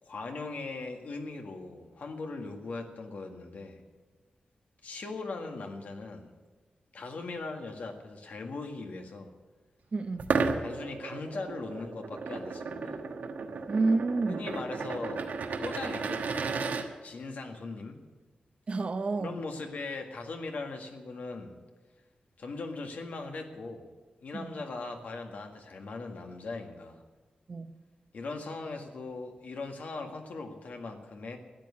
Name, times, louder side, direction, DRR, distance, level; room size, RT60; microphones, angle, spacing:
voice 1, 0.0-3.8 4.8-6.3 6.9-9.3 10.6-13.0 14.3-15.3 15.6-16.2 17.0-18.0 19.2-21.6 22.4-23.9 24.2-27.0 28.1-31.4, left 3 dB, 70° left, 1.8 m, -39 dB
voice 2, 9.9-10.4 13.7-14.4 18.7-19.4 24.3-24.5 27.5-27.8, right 3 dB, 45° right, 0.8 m, -29 dB
sound 1, 10.2-16.8, right 4 dB, 90° right, 1.3 m, -33 dB
13.5 x 9.7 x 8.7 m
wide cardioid pair, 135°, 3 cm